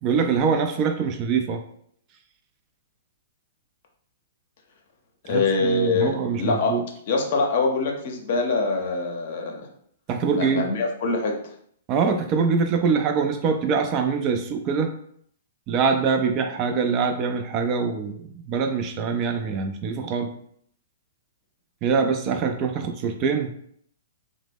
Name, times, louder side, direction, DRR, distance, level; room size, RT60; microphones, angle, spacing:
voice 1, 0.0-1.6 5.3-6.8 10.1-10.7 11.9-14.9 15.7-20.3 21.8-23.5, right 5 dB, 35° right, 6 dB, 0.3 m, -24 dB
voice 2, 5.3-6.8 7.1-9.7 10.3-11.5, left 3 dB, 55° left, 2 dB, 0.6 m, -24 dB
2.8 x 2.0 x 3.4 m, 0.66 s
figure-of-eight pair, 115°, 0 cm